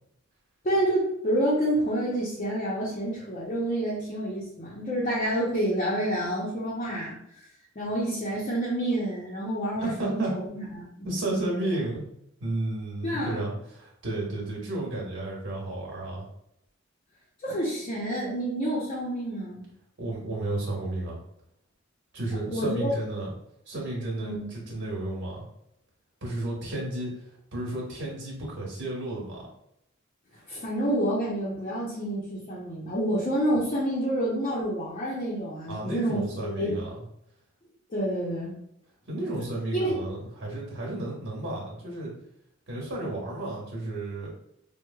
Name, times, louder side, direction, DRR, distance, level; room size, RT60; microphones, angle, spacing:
voice 1, 0.6-7.1 7.8-11.1 13.0-13.4 17.4-19.7 22.5-22.9 24.2-24.5 30.5-36.8 37.9-38.5 39.7-40.0, right 1 dB, 35° left, -7 dB, 0.7 m, -28 dB
voice 2, 9.7-10.3 11.0-12.0 12.4-16.2 20.0-21.2 22.1-23.3 23.7-25.4 26.2-27.1 27.5-29.4 35.7-37.0 39.1-42.1 42.7-44.3, right 2 dB, 60° right, -3 dB, 1.4 m, -32 dB
4.5 x 2.1 x 2.3 m, 0.75 s
head